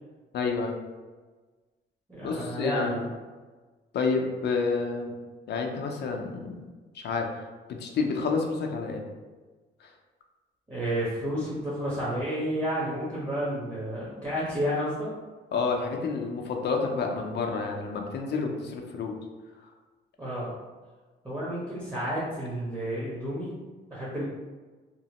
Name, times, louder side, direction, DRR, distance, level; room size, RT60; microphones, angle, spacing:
voice 1, 0.3-0.7 2.2-3.0 3.9-5.2 5.5-6.7 6.9-7.3 7.7-9.0 9.8-9.9 15.5-19.1, left 4 dB, 60° left, 2 dB, 0.5 m, -29 dB
voice 2, 2.1-3.1 10.7-15.1 20.2-20.5 21.2-23.5 23.9-24.3, equal, 15° right, -9 dB, 1.0 m, -31 dB
2.9 x 2.0 x 2.9 m, 1.3 s
cardioid pair, 90°, 20 cm